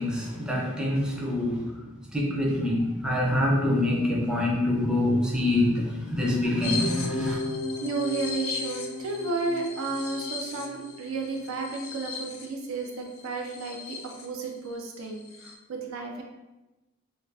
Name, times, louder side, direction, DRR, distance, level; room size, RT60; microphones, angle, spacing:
voice 1, 0.0-1.9 2.1-7.4, left 1 dB, 5° right, -3 dB, 0.4 m, -25 dB
sound 1, 6.6-14.3 14.7-14.8 15.0-15.5, left 3 dB, 70° left, 0.4 m, -35 dB
voice 2, 7.8-16.2, right 3 dB, 75° right, 1 dB, 0.4 m, -33 dB
2.4 x 2.3 x 3.2 m, 1.1 s
head